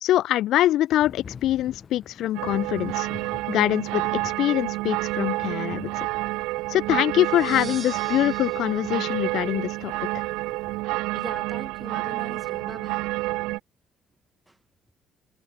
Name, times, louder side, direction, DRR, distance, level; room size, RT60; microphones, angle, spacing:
voice 1, 0.0-3.1 3.5-6.1 6.7-9.9, left 13 dB, 65° left, 0.5 m, -24 dB
Thunder / Rain, 1.0-10.8, left 6 dB, 45° left, 1.8 m, -47 dB
sound 1, 2.3-13.6, right 21 dB, 75° right, 0.3 m, -29 dB
sound 2, 7.2-10.0, right 7 dB, 45° right, 4.7 m, -44 dB
voice 2, 11.1-13.1 14.5-14.6, right 1 dB, 10° right, 1.9 m, -40 dB
hypercardioid pair, 55°, 0 cm